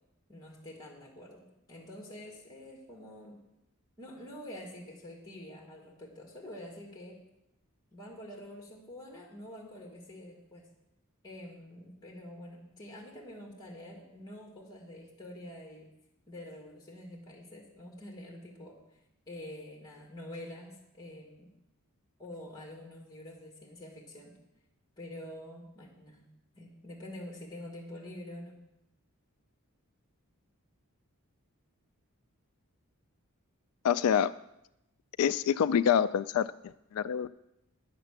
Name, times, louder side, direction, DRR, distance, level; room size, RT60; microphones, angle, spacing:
voice 1, 0.3-3.4 4.0-7.2 7.9-10.7 11.2-15.9 16.3-18.8 19.3-21.5 22.2-24.3 25.0-26.2 26.5-28.6, left 1 dB, 20° left, 0 dB, 1.8 m, -47 dB
voice 2, 33.8-34.3 35.2-36.5 36.9-37.3, left 8 dB, 75° left, 14 dB, 0.3 m, -26 dB
9.7 x 6.7 x 7.9 m, 0.87 s
head